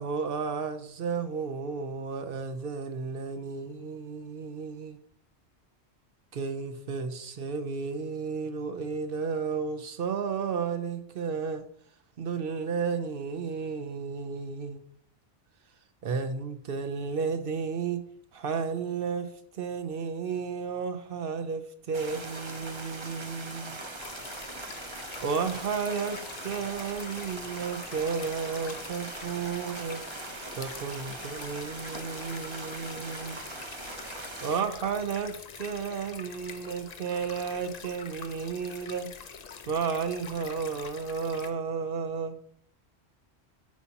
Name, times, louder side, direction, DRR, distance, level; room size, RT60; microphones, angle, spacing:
voice 1, 0.0-5.0 6.3-11.6 12.2-14.8 16.0-18.0 18.3-19.3 19.5-23.8 25.2-30.0 30.6-33.4 34.4-39.1 39.7-42.4, right 5 dB, 60° right, 8 dB, 0.8 m, -33 dB
sound 1, 21.9-34.6, right 2 dB, 30° right, 0.8 m, -41 dB
sound 2, 24.0-41.5, left 6 dB, 45° left, 0.6 m, -45 dB
9.0 x 5.7 x 2.8 m, 0.66 s
omnidirectional pair, 1.1 m